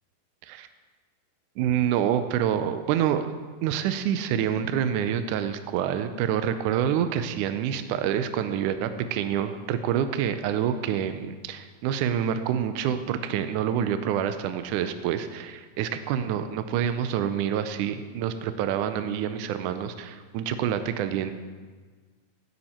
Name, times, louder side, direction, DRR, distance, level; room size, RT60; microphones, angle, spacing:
voice 1, 1.6-3.3 3.6-21.3, right 9 dB, 85° right, 9 dB, 1.8 m, -27 dB
16.5 x 7.2 x 4.3 m, 1.5 s
omnidirectional pair, 4.2 m